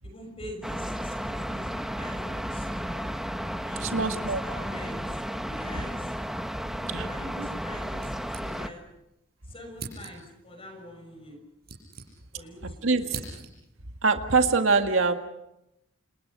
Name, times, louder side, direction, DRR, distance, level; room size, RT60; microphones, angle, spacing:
voice 1, 0.0-1.7 2.0-3.1 3.6-6.2 6.5-8.8 9.4-11.4 12.3-13.2, equal, 30° left, 4 dB, 6.4 m, -44 dB
sound 1, 0.6-8.7, equal, ahead, 1.1 m, -33 dB
voice 2, 3.8-4.4 6.9-7.0 12.8-13.2 14.0-15.1, right 4 dB, 85° right, 6 dB, 1.9 m, -23 dB
sound 2, 8.0-9.0 9.2-9.3 9.7-10.4 11.2-12.5 12.8-13.8, right 4 dB, 50° right, 7.7 m, -42 dB
29.5 x 28.0 x 5.5 m, 0.87 s
head